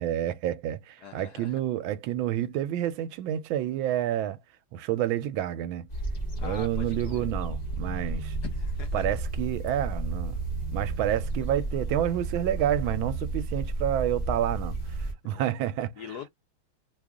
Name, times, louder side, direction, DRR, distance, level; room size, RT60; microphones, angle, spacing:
voice 1, 0.0-4.4 4.7-5.9 6.4-8.4 8.9-10.4 10.7-15.9, right 11 dB, 80° right, 1.3 m, -29 dB
voice 2, 1.0-1.6 6.4-7.2 8.4-9.1 15.2-15.5 16.0-16.3, left 8 dB, 70° left, 1.0 m, -43 dB
sound 1, 5.9-15.1, right 2 dB, 35° left, 0.7 m, -32 dB
3.3 x 2.4 x 3.5 m
omnidirectional pair, 2.2 m